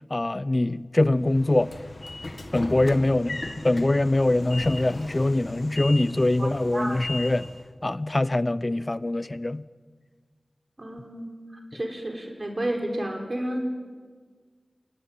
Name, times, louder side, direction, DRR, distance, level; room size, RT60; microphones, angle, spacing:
voice 1, 0.1-1.7 2.5-7.5 7.8-9.6, left 2 dB, 40° left, 0.8 m, -23 dB
Train / Sliding door, 1.2-7.7, left 2 dB, 55° left, 2.1 m, -37 dB
voice 2, 6.4-7.1 10.8-11.3 11.7-13.7, right 1 dB, 40° right, 5.3 m, -31 dB
28.0 x 19.0 x 9.1 m
wide cardioid pair, 65°, 0 cm